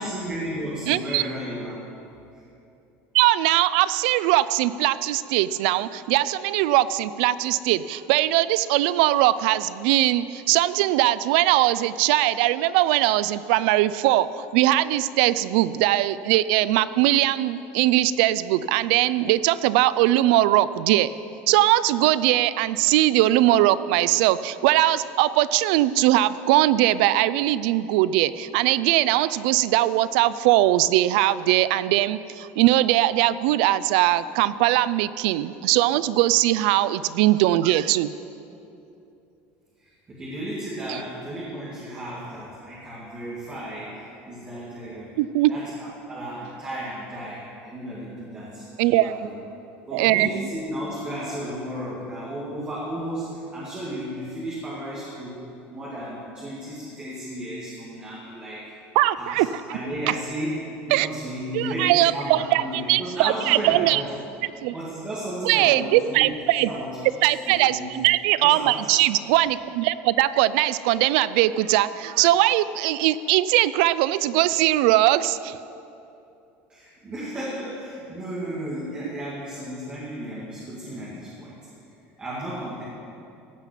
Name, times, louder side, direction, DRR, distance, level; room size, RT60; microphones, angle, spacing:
voice 1, 0.0-1.8 2.3-2.4 39.8-45.1 45.5-49.3 49.9-55.4 55.7-58.6 59.2-59.4 59.7-60.6 60.9-64.1 64.7-66.3 66.6-67.0 67.5-67.9 68.4-68.9 76.7-81.6 82.2-82.8, right 1 dB, 20° right, -7 dB, 2.2 m, -33 dB
voice 2, 0.9-1.2 3.1-21.1 21.5-38.1 40.9-41.0 45.2-45.5 48.8-49.2 49.9-50.3 59.0-59.5 60.1-60.2 60.9-61.1 61.5-62.6 62.9-64.0 64.6-64.7 65.4-66.7 67.2-75.6, right 15 dB, 80° right, 16 dB, 0.4 m, -20 dB
16.0 x 5.7 x 8.3 m, 2.8 s
cardioid pair, 160°, 5 cm